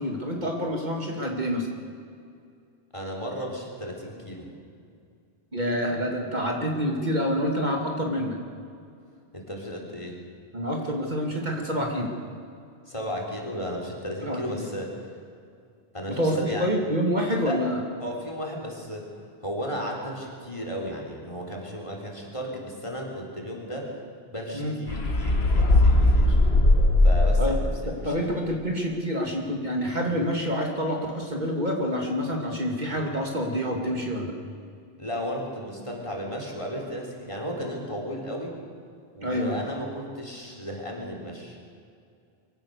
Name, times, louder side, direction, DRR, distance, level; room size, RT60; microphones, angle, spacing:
voice 1, 0.0-1.7 5.5-8.4 10.5-12.1 14.2-14.6 16.2-17.8 24.5-24.8 27.4-27.6 27.8-34.3 39.2-39.6, equal, 45° right, 0 dB, 2.6 m, -27 dB
voice 2, 2.9-4.5 9.3-10.2 12.9-15.1 15.9-16.7 17.4-17.6 18.0-19.1 19.4-23.9 24.3-26.4 27.0-28.2 35.0-38.6 39.1-41.6, equal, 30° left, -1 dB, 3.8 m, -34 dB
sound 1, 24.9-27.7, left 2 dB, 75° left, 1.9 m, -19 dB
24.0 x 16.5 x 6.6 m, 2.4 s
omnidirectional pair, 1.1 m